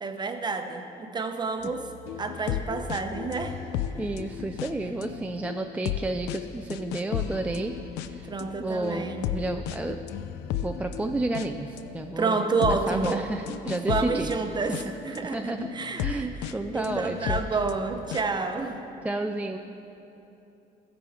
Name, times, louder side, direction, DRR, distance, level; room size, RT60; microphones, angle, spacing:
voice 1, 0.0-1.9 2.2-3.6 8.3-9.3 12.2-13.2 13.9-18.8, right 4 dB, 25° right, 5 dB, 0.8 m, -29 dB
sound 1, 1.6-15.2 15.6-18.5, left 10 dB, 90° left, 0.4 m, -35 dB
voice 2, 4.0-8.3 8.6-10.0 10.5-14.3 14.7-14.8 15.2-15.7 16.0-17.6 19.0-19.6, right 2 dB, 10° right, 4 dB, 0.3 m, -31 dB
14.5 x 6.1 x 4.9 m, 3.0 s
cardioid pair, 110°, 17 cm